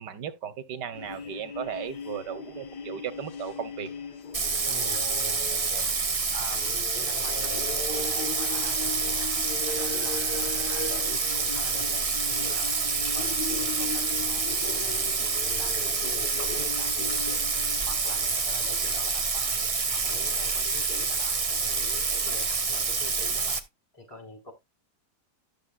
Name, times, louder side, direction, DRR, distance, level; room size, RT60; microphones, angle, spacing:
voice 1, 0.0-3.9, right 9 dB, 85° right, 1.7 m, -36 dB
sound 1, 0.9-18.6, left 4 dB, 80° left, 1.8 m, -39 dB
sound 2, 1.9-19.7, left 4 dB, 55° left, 4.9 m, -64 dB
Bathtub (filling or washing), 4.3-23.6, right 4 dB, 30° right, 0.6 m, -27 dB
voice 2, 4.7-23.6 23.9-24.5, left 3 dB, 15° left, 4.6 m, -45 dB
12.5 x 6.9 x 2.3 m
omnidirectional pair, 1.8 m